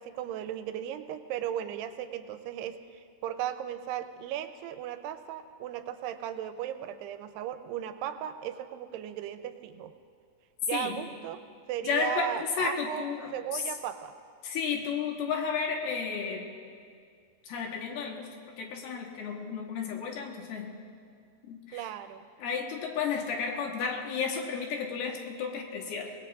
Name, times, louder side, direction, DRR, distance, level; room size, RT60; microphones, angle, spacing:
voice 1, 0.0-9.9 10.7-14.1 21.7-22.2, right 11 dB, 85° right, 9 dB, 2.7 m, -36 dB
voice 2, 10.7-11.0 11.8-13.7 14.4-16.5 17.4-20.7 21.4-21.9 22.4-26.1, left 6 dB, 75° left, 1 dB, 3.1 m, -33 dB
24.5 x 19.5 x 2.5 m, 2.1 s
omnidirectional pair, 4.7 m